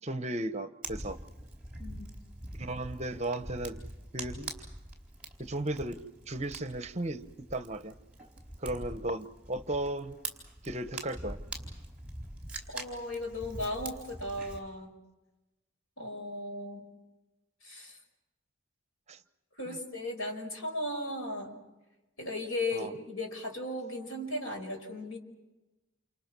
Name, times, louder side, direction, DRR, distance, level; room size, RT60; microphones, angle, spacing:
voice 1, 0.0-1.2 2.5-3.8 4.1-4.5 5.4-6.0 6.3-7.9 8.6-10.2 10.6-11.4 19.1-19.2 19.7-19.8 22.7-22.9, right 1 dB, 30° right, 11 dB, 0.9 m, -35 dB
Fire, 0.8-14.6, right 2 dB, 5° right, 4.2 m, -44 dB
voice 2, 1.8-2.1 12.7-14.9 16.0-16.8 17.6-18.0 19.6-21.6 22.2-25.2, left 1 dB, 90° left, 4 dB, 5.4 m, -36 dB
29.0 x 28.0 x 6.1 m, 1.1 s
head